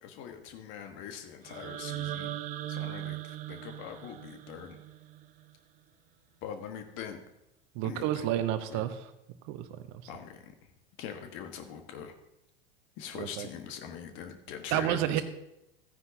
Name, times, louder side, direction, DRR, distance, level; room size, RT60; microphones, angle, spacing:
voice 1, 0.0-2.3 2.7-4.8 6.4-7.2 7.8-8.3 8.7-8.8 10.1-10.5 11.0-12.1 13.0-15.2, left 8 dB, 40° left, 6 dB, 1.4 m, -42 dB
sound 1, 1.4-5.5, right 13 dB, 25° right, 0.4 m, -39 dB
voice 2, 7.7-9.1 9.5-9.9 13.1-13.5 14.7-15.2, right 12 dB, 40° right, 11 dB, 0.9 m, -30 dB
15.5 x 9.5 x 2.7 m, 0.87 s
figure-of-eight pair, 85°, 29 cm